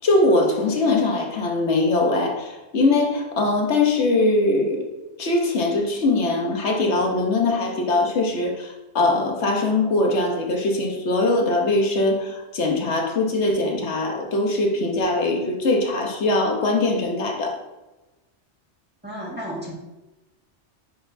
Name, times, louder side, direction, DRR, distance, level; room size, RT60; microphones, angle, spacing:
voice 1, 0.0-4.8 5.2-17.6, left 2 dB, 75° left, 1 dB, 1.3 m, -21 dB
voice 2, 19.0-19.7, equal, 10° right, -6 dB, 1.7 m, -32 dB
9.1 x 4.0 x 2.7 m, 1.1 s
omnidirectional pair, 1.2 m